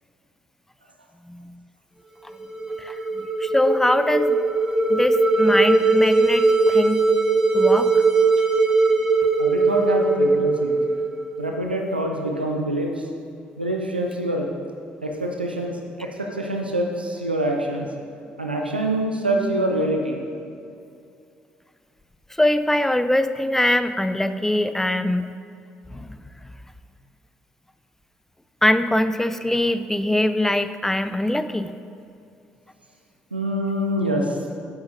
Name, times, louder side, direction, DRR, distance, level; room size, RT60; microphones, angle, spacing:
sound 1, 2.3-11.5, right 3 dB, 10° right, 1.0 m, -20 dB
voice 1, 3.4-4.4 4.9-7.1 7.5-8.0 22.4-25.3 25.9-26.2 28.6-31.7, left 1 dB, 5° left, 11 dB, 0.4 m, -22 dB
voice 2, 9.4-10.7 11.4-13.0 13.6-14.5 15.0-17.9 18.4-20.2 33.3-34.4, right 1 dB, 90° right, 1 dB, 0.7 m, -25 dB
11.5 x 8.6 x 2.6 m, 2.5 s
figure-of-eight pair, 45°, 5 cm